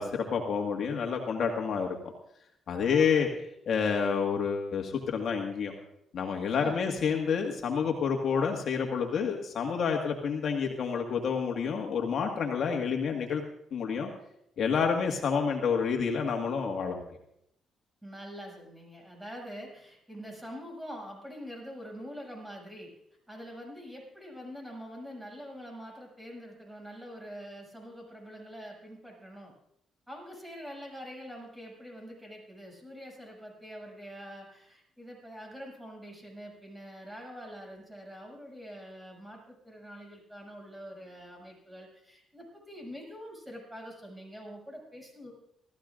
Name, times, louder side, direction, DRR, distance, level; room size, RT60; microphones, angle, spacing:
voice 1, 0.0-2.0 2.7-3.3 3.7-5.7 6.1-13.4 13.7-14.1 14.6-17.0, left 6 dB, 60° left, 2 dB, 1.7 m, -29 dB
voice 2, 2.8-3.3 6.5-7.0 18.0-22.9 23.3-29.5 30.1-45.3, equal, 5° right, 0 dB, 6.9 m, -45 dB
26.5 x 14.5 x 2.5 m, 0.76 s
cardioid pair, 90°, 0 cm